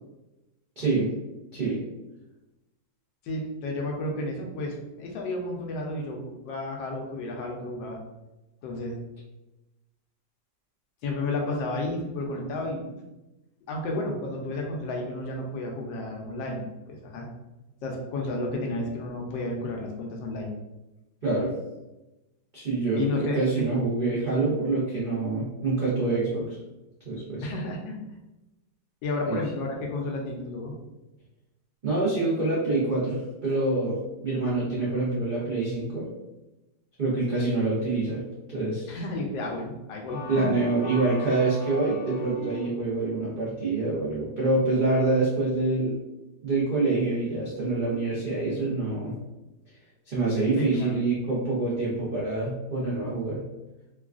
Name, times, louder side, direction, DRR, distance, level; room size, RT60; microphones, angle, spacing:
voice 1, 0.8-1.1 1.5-1.8 21.2-21.5 22.5-26.6 27.0-27.5 29.3-29.4 31.8-36.1 37.0-38.2 38.5-38.9 40.3-45.9 46.4-49.1 50.1-53.5, right 3 dB, 70° right, -8 dB, 0.4 m, -26 dB
voice 2, 3.2-8.0 8.6-8.9 11.0-13.0 13.7-17.3 17.8-20.5 22.9-23.7 27.4-28.0 29.0-30.7 38.9-40.5 50.6-51.0, left 2 dB, 80° left, 1 dB, 1.3 m, -32 dB
sound 1, 40.1-43.0, right 1 dB, 65° left, 1.5 m, -38 dB
3.5 x 2.3 x 2.4 m, 1.0 s
omnidirectional pair, 2.0 m